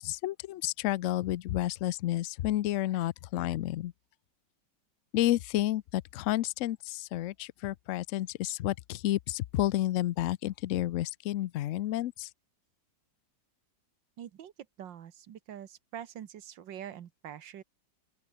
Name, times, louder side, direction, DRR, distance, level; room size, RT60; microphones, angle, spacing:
voice 1, 0.0-3.9 5.1-12.3, left 14 dB, 85° left, 0.6 m, -31 dB
voice 2, 14.2-14.5 14.8-17.6, right 10 dB, 90° right, 1.9 m, -44 dB
open air
omnidirectional pair, 1.9 m